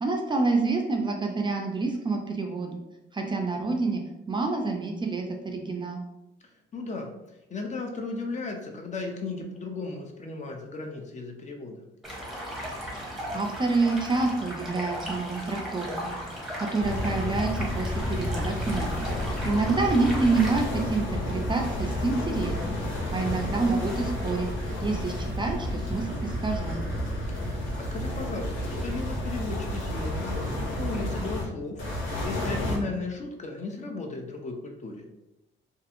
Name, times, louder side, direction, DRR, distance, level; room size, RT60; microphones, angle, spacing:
voice 1, 0.0-2.8 3.1-4.0 4.3-6.0 13.0-16.2 16.6-18.9 19.4-22.8 23.1-24.5 24.8-26.8, right 3 dB, 25° right, 2 dB, 0.4 m, -27 dB
voice 2, 6.7-7.1 7.5-11.9 19.3-19.6 27.8-30.4 30.7-31.8 32.2-35.0, left 3 dB, 35° left, 3 dB, 0.5 m, -35 dB
Stream, 12.0-20.6, equal, ahead, 0.8 m, -36 dB
sound 1, 16.8-31.4 31.8-32.8, left 1 dB, 80° left, 1.0 m, -31 dB
2.6 x 2.4 x 2.5 m, 0.92 s
cardioid pair, 90°, 20 cm